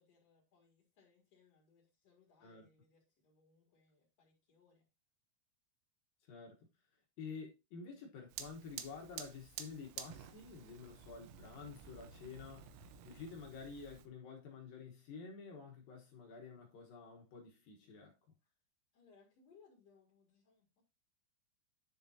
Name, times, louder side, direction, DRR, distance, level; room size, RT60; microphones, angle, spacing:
voice 1, 0.0-4.8 18.9-20.8, left 5 dB, 45° left, 2.5 m, -68 dB
voice 2, 6.2-6.7 7.2-18.2, left 5 dB, 65° left, 2.4 m, -50 dB
Fire, 8.3-14.1, right 9 dB, 85° right, 3.5 m, -51 dB
10.5 x 6.7 x 2.7 m
omnidirectional pair, 5.5 m